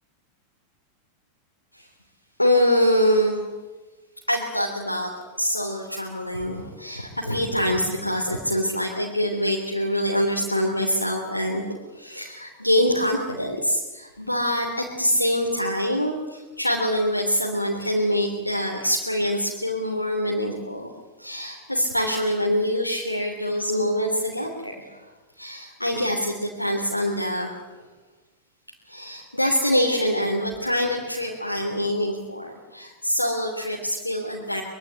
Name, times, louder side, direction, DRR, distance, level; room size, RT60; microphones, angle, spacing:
voice 1, 2.4-3.4 4.3-11.6 11.9-20.9 21.2-25.1 25.4-27.8 28.9-34.6, equal, 85° left, -1 dB, 3.2 m, -25 dB
24.5 x 23.0 x 9.0 m, 1.2 s
figure-of-eight pair, 90°, 0 cm